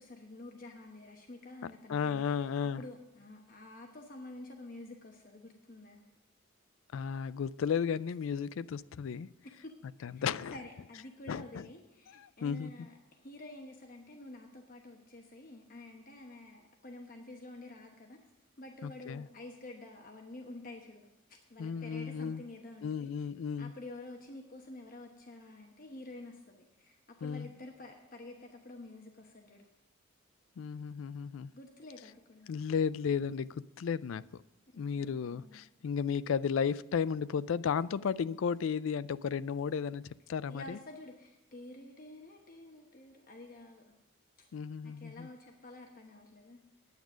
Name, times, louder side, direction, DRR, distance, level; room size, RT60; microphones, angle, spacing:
voice 1, 0.0-2.5 2.8-6.0 9.4-18.2 18.6-21.1 21.5-23.3 23.6-29.7 31.5-32.5 34.7-35.6 40.5-43.8 44.8-46.6, left 2 dB, 45° left, 2 dB, 1.0 m, -49 dB
voice 2, 1.9-2.8 6.9-9.3 10.0-10.6 11.3-11.6 12.1-12.9 18.8-19.3 21.6-22.4 22.8-23.7 27.2-27.5 30.6-31.5 32.5-34.4 34.8-40.8 44.5-45.3, left 6 dB, 75° left, 17 dB, 0.4 m, -34 dB
9.5 x 9.1 x 6.1 m, 0.99 s
head